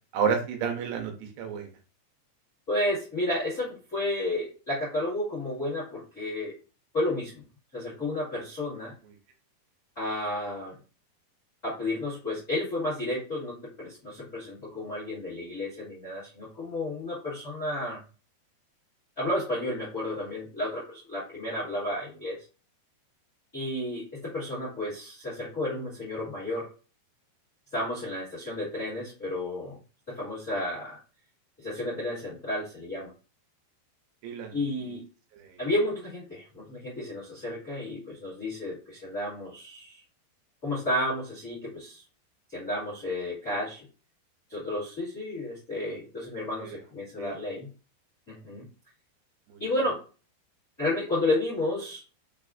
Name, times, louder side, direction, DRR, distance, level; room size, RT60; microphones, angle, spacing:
voice 1, 0.1-1.1 1.4-1.7 34.2-34.6 35.4-35.5 46.6-46.7 47.2-47.3 49.5-49.6, right 6 dB, 90° right, 3 dB, 2.9 m, -30 dB
voice 2, 2.7-6.5 6.9-7.4 7.7-8.9 9.9-10.8 11.6-18.0 19.2-22.4 23.5-26.7 27.7-29.8 30.1-31.0 31.6-33.1 34.5-35.0 35.6-40.0 40.6-42.0 42.5-43.8 44.5-47.7 48.3-48.6 49.6-50.0 50.8-52.0, left 1 dB, 40° left, -8 dB, 1.1 m, -32 dB
6.3 x 2.4 x 2.5 m, 0.35 s
omnidirectional pair, 4.9 m